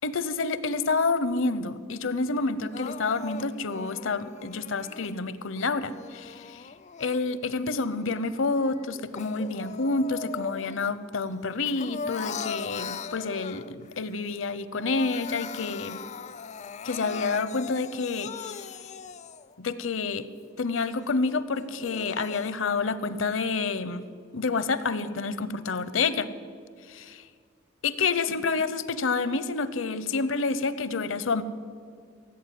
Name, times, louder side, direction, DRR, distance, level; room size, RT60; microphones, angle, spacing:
voice 1, 0.0-6.7 7.0-16.0 16.8-18.7 19.6-20.3 20.6-24.1 24.3-26.3 26.9-27.2 27.8-31.4, left 4 dB, 70° left, 15 dB, 0.7 m, -28 dB
Crying sobbing, 2.7-5.1 5.8-7.6 8.0-10.9 11.2-13.9 14.3-14.4 14.7-19.6 20.1-20.2 20.7-20.8 21.6-22.5, left 5 dB, 35° left, 0.4 m, -39 dB
16.5 x 7.9 x 9.4 m, 2.1 s
head